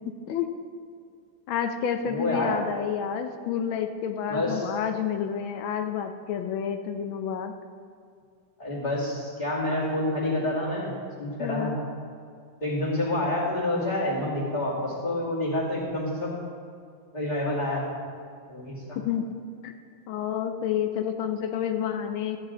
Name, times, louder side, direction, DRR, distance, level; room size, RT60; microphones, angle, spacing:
voice 1, 0.1-0.5 1.5-7.5 11.4-11.8 19.0-19.2 19.6-19.7 20.1-22.4, left 8 dB, 80° left, 7 dB, 1.5 m, -29 dB
voice 2, 2.0-2.6 4.3-4.7 8.6-11.7 12.6-16.3 17.1-17.9 18.5-19.0, left 1 dB, 20° left, -6 dB, 2.4 m, -28 dB
13.5 x 9.2 x 3.8 m, 2.3 s
omnidirectional pair, 2.2 m